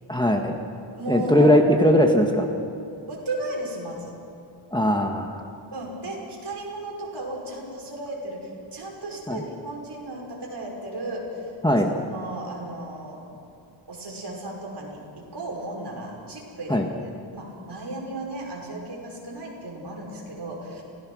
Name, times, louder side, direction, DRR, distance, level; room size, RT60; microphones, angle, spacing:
voice 1, 0.1-0.6 1.1-2.5 4.7-5.4 9.3-9.4 11.6-11.9 16.7-16.9, equal, 10° left, 2 dB, 1.5 m, -19 dB
voice 2, 0.9-1.5 3.1-4.2 5.7-11.4 12.1-13.2 13.9-16.8 17.3-20.8, right 2 dB, 55° right, -2 dB, 5.6 m, -35 dB
26.5 x 18.0 x 6.3 m, 2.5 s
wide cardioid pair, 130°, 48 cm